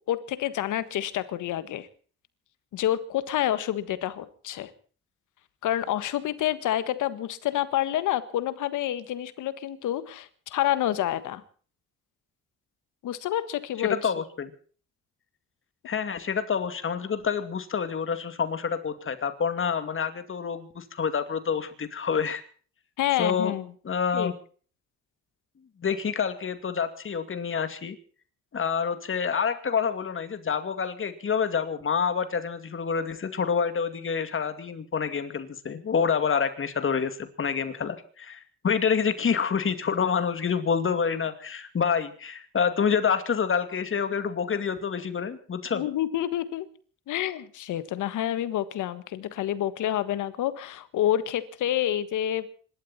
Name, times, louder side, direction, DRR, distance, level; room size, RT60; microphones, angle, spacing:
voice 1, 0.1-1.9 2.7-4.7 5.6-11.4 13.0-14.0 23.0-23.6 24.1-24.3 45.7-46.7 47.1-52.5, left 12 dB, 80° left, 14 dB, 1.6 m, -28 dB
voice 2, 13.8-14.5 15.9-22.4 23.2-23.5 23.8-24.3 25.8-28.0 28.5-45.8, left 6 dB, 45° left, 10 dB, 2.5 m, -27 dB
26.0 x 12.5 x 4.3 m, 0.42 s
cardioid pair, 90°, 30 cm